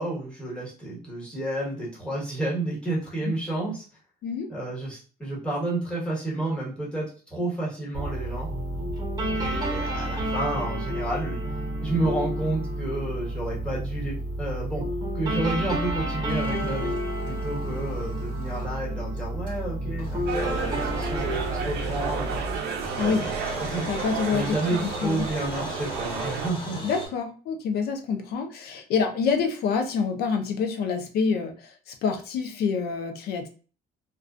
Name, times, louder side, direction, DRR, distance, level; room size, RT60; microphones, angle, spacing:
voice 1, 0.0-3.8 4.5-8.5 9.3-11.4 11.8-14.8 15.1-17.0 17.2-22.4 23.0-23.8 24.3-26.8, right 2 dB, 5° left, -6 dB, 1.3 m, -31 dB
sound 1, 7.9-22.6, right 1 dB, 25° right, 0.7 m, -30 dB
sound 2, 16.3-18.9 19.2-19.3 19.5-19.6 20.0-22.5 22.8-27.1, equal, 30° left, 1.1 m, -40 dB
sound 3, 20.3-26.5, right 5 dB, 85° right, 0.5 m, -32 dB
voice 2, 22.9-23.2 23.9-24.6 24.8-25.2 26.8-33.5, left 5 dB, 70° left, 6 dB, 0.6 m, -27 dB
2.3 x 2.2 x 2.4 m, 0.38 s
cardioid pair, 110°, 17 cm